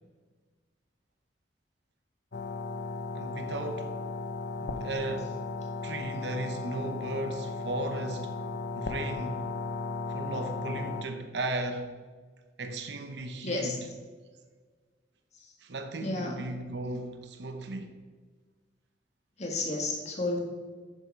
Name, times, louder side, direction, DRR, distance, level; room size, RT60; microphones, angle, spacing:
sound 1, 2.3-11.0, left 3 dB, 65° left, 0.7 m, -36 dB
voice 1, 3.1-4.0 4.6-5.4 5.8-8.4 8.7-9.4 10.1-11.9 12.6-13.9 15.6-18.0, right 2 dB, 70° right, 0.9 m, -36 dB
voice 2, 13.4-13.8 16.0-16.4 19.4-20.4, left 2 dB, 40° left, 1.9 m, -31 dB
11.0 x 6.9 x 4.7 m
head